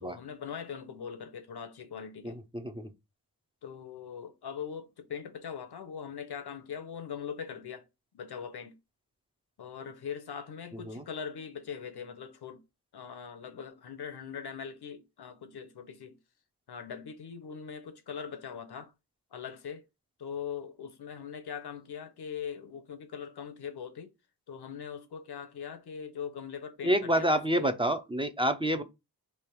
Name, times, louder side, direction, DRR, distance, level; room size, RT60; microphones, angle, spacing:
voice 1, 0.0-2.4 3.6-7.8 8.1-8.7 9.6-12.6 12.9-16.2 16.7-18.9 19.3-19.8 20.2-24.1 24.5-27.7 28.7-28.8, left 7 dB, 70° left, 0.8 m, -41 dB
voice 2, 2.2-2.9 10.9-11.0 26.8-28.8, right 1 dB, 15° right, 0.6 m, -28 dB
3.4 x 3.0 x 4.6 m
wide cardioid pair, 80°, 40 cm